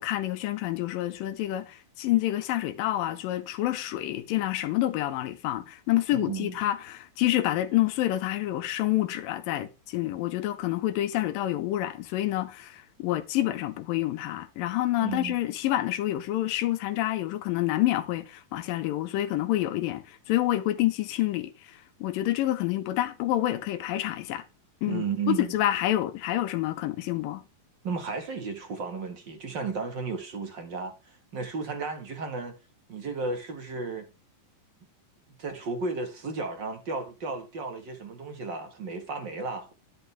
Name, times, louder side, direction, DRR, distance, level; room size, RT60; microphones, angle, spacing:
voice 1, 0.0-24.4 24.8-25.0 25.4-27.4, left 14 dB, 90° left, 2.5 m, -28 dB
voice 2, 6.1-6.6 15.0-15.3 24.9-25.5 27.8-32.5 32.9-34.1 35.4-39.7, right 4 dB, 45° right, 1.7 m, -34 dB
11.0 x 9.0 x 3.4 m
omnidirectional pair, 4.0 m